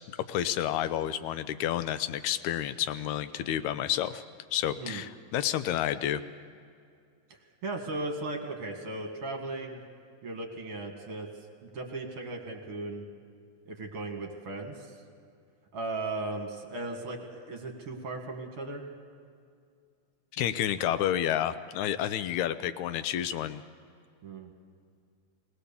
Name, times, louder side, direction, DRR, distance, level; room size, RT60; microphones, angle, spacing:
voice 1, 0.3-4.2 4.5-6.2 20.3-23.6, left 11 dB, 80° left, 12 dB, 2.0 m, -30 dB
voice 2, 7.3-9.8 10.2-11.3 11.6-13.1 13.7-15.0 15.7-18.8 24.2-24.5, right 2 dB, 55° right, 2 dB, 2.6 m, -37 dB
19.5 x 19.5 x 7.0 m, 2.3 s
omnidirectional pair, 3.4 m